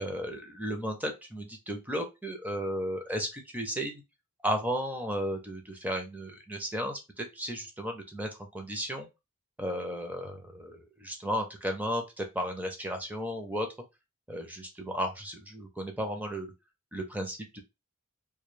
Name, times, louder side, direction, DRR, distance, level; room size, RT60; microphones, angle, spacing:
voice 1, 0.0-4.0 4.4-9.1 9.6-13.7 14.3-16.5 16.9-17.6, equal, 10° right, 4 dB, 0.5 m, -34 dB
2.3 x 2.2 x 3.1 m, 0.24 s
head